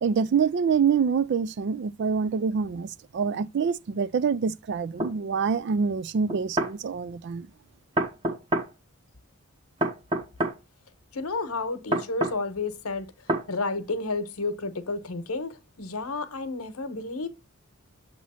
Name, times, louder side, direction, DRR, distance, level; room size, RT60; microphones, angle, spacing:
voice 1, 0.0-7.5, right 6 dB, 55° right, 0.3 m, -26 dB
sound 1, 5.0-5.1 6.3-6.7 8.0-8.7 9.8-10.6 11.9-12.4 13.3-13.5, right 1 dB, 25° right, 0.9 m, -26 dB
voice 2, 11.1-13.1 13.5-17.3, left 3 dB, 85° left, 1.0 m, -31 dB
7.3 x 3.1 x 5.5 m
head